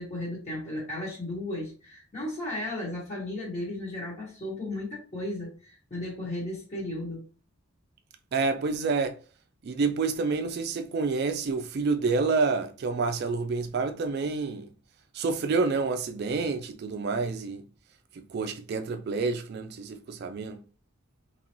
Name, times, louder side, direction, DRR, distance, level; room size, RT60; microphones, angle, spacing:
voice 1, 0.0-7.2, left 1 dB, 35° left, 1.3 m, -35 dB
voice 2, 8.3-9.2 9.6-14.7 15.1-17.7 18.2-20.6, right 4 dB, 50° right, 0.3 m, -28 dB
3.8 x 2.9 x 2.9 m
head